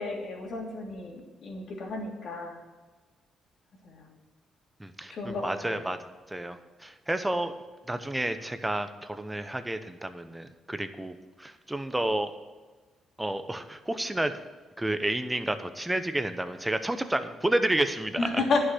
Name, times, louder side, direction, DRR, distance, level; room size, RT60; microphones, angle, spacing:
voice 1, 0.0-2.6 3.8-4.1 5.1-5.8 18.2-18.6, left 3 dB, 60° left, 0 dB, 2.9 m, -32 dB
voice 2, 4.8-6.0 6.3-7.5 7.9-12.3 13.2-14.3 14.8-18.4, right 1 dB, 10° right, 9 dB, 0.9 m, -30 dB
11.0 x 6.4 x 8.0 m, 1.3 s
cardioid pair, 90°, 0 cm